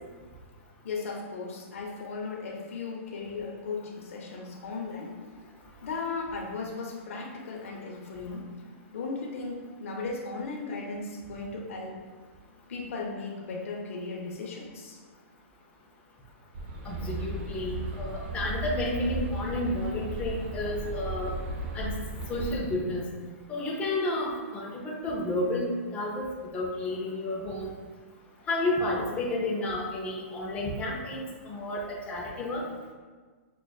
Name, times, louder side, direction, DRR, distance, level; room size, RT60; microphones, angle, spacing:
voice 1, 0.8-5.1 5.8-8.4 8.9-12.0 12.7-15.0, left 4 dB, 70° left, -1 dB, 0.9 m, -36 dB
sound 1, 16.5-22.6, right 2 dB, 45° right, 0.7 m, -35 dB
voice 2, 16.8-21.3 21.7-21.9 22.3-23.1 23.5-27.7 28.5-32.6, left 1 dB, 15° left, -4 dB, 0.6 m, -31 dB
6.1 x 2.4 x 2.4 m, 1.4 s
hypercardioid pair, 145°, 8 cm